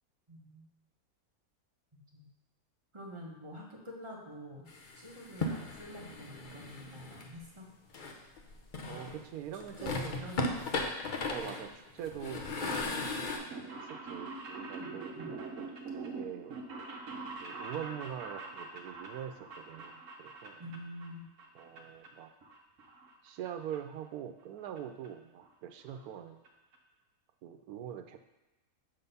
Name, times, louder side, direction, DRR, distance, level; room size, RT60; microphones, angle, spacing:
voice 1, 0.3-0.7 2.1-2.3 2.9-4.7 5.0-7.7 9.8-10.7 14.8-15.3 20.6-21.2, equal, 20° right, -3 dB, 1.2 m, -47 dB
sound 1, 4.7-7.3 7.9-9.2 9.6-13.4, left 3 dB, 45° left, 0.6 m, -37 dB
voice 2, 8.9-10.3 11.2-15.1 16.0-16.6 17.4-20.6 21.5-22.3 23.2-26.4 27.4-28.2, right 9 dB, 85° right, 6 dB, 1.1 m, -43 dB
sound 2, 13.4-21.1 21.4-22.1 22.4-23.5 23.7-23.8 24.8-24.9 25.0-25.1 25.4-25.5 25.8-26.1 26.4-26.5 26.7-26.8, right 3 dB, 60° right, 1.2 m, -44 dB
7.1 x 4.0 x 5.4 m, 1.1 s
omnidirectional pair, 1.5 m